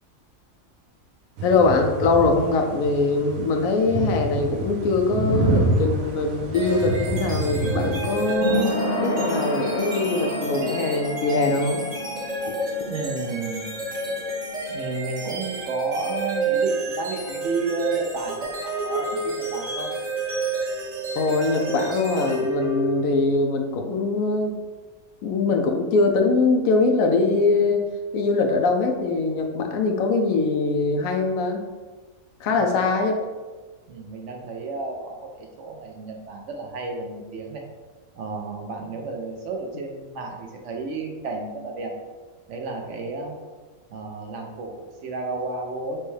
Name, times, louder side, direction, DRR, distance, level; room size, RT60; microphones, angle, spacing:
voice 1, 1.4-11.8 21.1-24.5 25.2-27.8 28.1-31.6 32.4-33.3, left 3 dB, 80° left, 4 dB, 1.0 m, -22 dB
sound 1, 1.4-8.3, right 1 dB, 85° right, 1.1 m, -27 dB
sound 2, 6.3-16.9 17.1-17.2, left 1 dB, 50° left, 0.5 m, -32 dB
sound 3, 6.5-23.2, right 3 dB, 35° right, 0.7 m, -29 dB
voice 2, 12.9-13.7 14.1-14.2 14.7-19.9 32.5-32.8 33.9-37.6 38.1-41.9 42.5-43.4 43.9-46.0, right 3 dB, 65° right, 2 dB, 0.9 m, -32 dB
6.1 x 2.2 x 3.2 m, 1.3 s
omnidirectional pair, 1.4 m